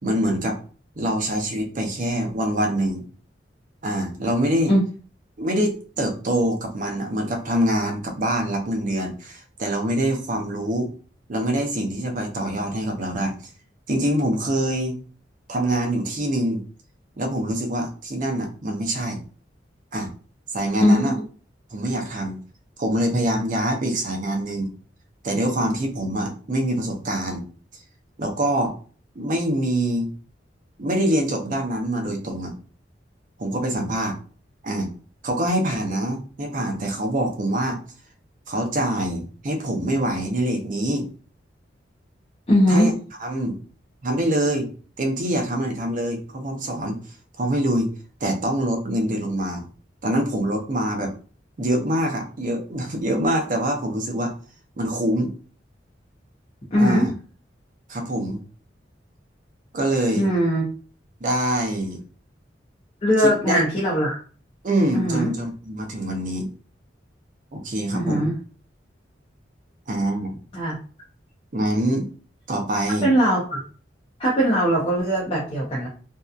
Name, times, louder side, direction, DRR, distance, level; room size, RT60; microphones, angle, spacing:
voice 1, 0.0-0.6 1.0-3.0 3.8-4.7 5.4-10.9 11.3-13.3 13.9-15.0 15.5-16.6 17.2-19.2 19.9-20.1 20.5-21.1 21.7-22.4 22.8-24.7 25.2-27.4 28.2-28.8 29.2-30.1 30.8-32.5 33.4-34.2 34.6-34.9 35.2-37.8 38.5-41.1 42.7-42.9 43.2-43.6 44.0-44.7 45.0-47.0 47.4-47.9 48.2-49.6 50.0-51.1 51.6-54.3 54.8-55.3 56.8-57.1 57.9-58.4 59.7-60.3 61.2-62.0 63.2-63.6 64.6-66.5 67.5-68.3 69.9-70.3 71.5-72.1 72.5-73.1, right 1 dB, 45° right, 3 dB, 0.6 m, -24 dB
voice 2, 20.8-21.2 42.5-42.9 56.7-57.1 60.1-60.6 63.0-64.2 64.9-65.3 67.9-68.3 70.5-70.7 73.0-73.6 74.2-75.9, equal, 30° left, -6 dB, 0.6 m, -20 dB
2.6 x 2.2 x 2.4 m, 0.39 s
head